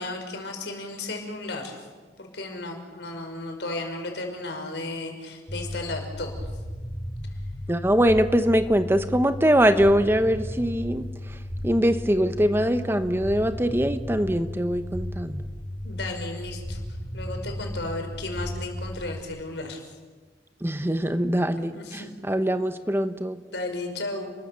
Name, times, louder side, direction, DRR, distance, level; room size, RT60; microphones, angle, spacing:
voice 1, 0.0-1.8 2.2-6.5 15.8-16.8 17.1-19.8 21.7-22.1 23.5-24.3, left 2 dB, 70° left, 4 dB, 5.2 m, -34 dB
sound 1, 5.5-19.2, left 1 dB, 15° left, 4.4 m, -35 dB
voice 2, 7.7-11.4 11.6-15.5 20.6-23.4, equal, 15° right, 9 dB, 0.9 m, -23 dB
30.0 x 22.0 x 7.0 m, 1.4 s
head